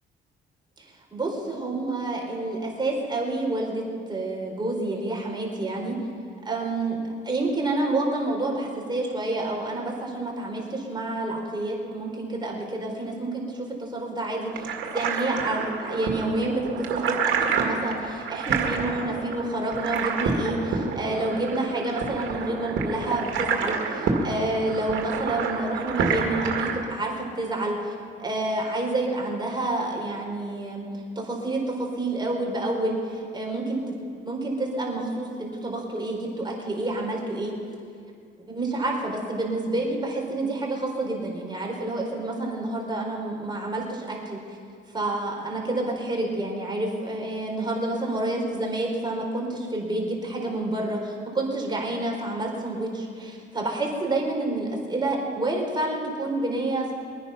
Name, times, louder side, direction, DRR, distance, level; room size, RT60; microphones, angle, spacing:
voice 1, 0.8-6.0 6.4-27.9 28.2-30.9 31.2-33.8 34.2-37.5 38.5-44.4 44.9-56.9, right 2 dB, 20° right, -1 dB, 4.0 m, -29 dB
sound 1, 14.5-26.8, right 5 dB, 75° right, 2.1 m, -28 dB
23.5 x 9.7 x 5.8 m, 2.3 s
cardioid pair, 90°, 20 cm